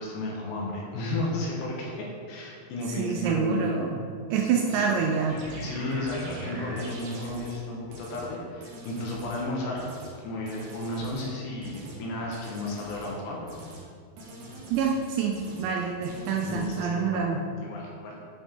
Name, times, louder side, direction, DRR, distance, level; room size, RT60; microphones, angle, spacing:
voice 1, 0.0-3.7 4.3-5.2 5.5-9.9 10.2-13.4 16.5-17.3 17.6-18.2, left 2 dB, 75° left, -3 dB, 2.9 m, -33 dB
voice 2, 3.0-4.0 4.3-5.4 14.7-17.4, right 6 dB, 85° right, 1 dB, 2.6 m, -27 dB
sound 1, 5.3-7.6 7.9-8.3 8.6-9.4 9.8-10.1 10.5-11.3 11.6-12.0 12.3-13.1 13.5-13.8 14.2-15.0 15.3-15.7 16.0-16.8, equal, 65° right, 3.0 m, -42 dB
9.3 x 4.9 x 3.7 m, 2.2 s
omnidirectional pair, 5.5 m